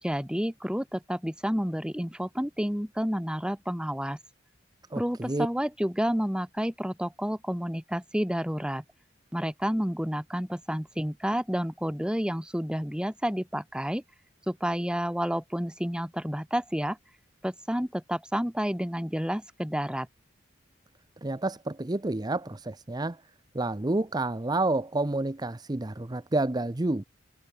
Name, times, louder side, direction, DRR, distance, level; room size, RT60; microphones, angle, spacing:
voice 1, 0.0-4.2 5.0-8.8 9.3-14.0 14.5-17.0 17.4-20.1, equal, 5° right, 2.1 m, -30 dB
voice 2, 4.9-5.5 21.2-23.2 23.5-27.1, right 2 dB, 20° right, 0.7 m, -29 dB
head